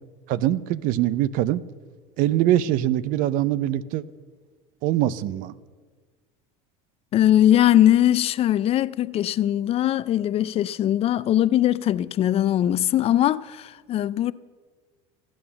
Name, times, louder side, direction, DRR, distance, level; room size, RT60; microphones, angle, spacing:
voice 1, 0.3-1.6 2.2-4.0 4.8-5.5, right 13 dB, 60° right, 0.6 m, -23 dB
voice 2, 7.1-14.3, left 12 dB, 40° left, 0.4 m, -20 dB
14.5 x 8.9 x 7.0 m
supercardioid pair, 110°, 16 cm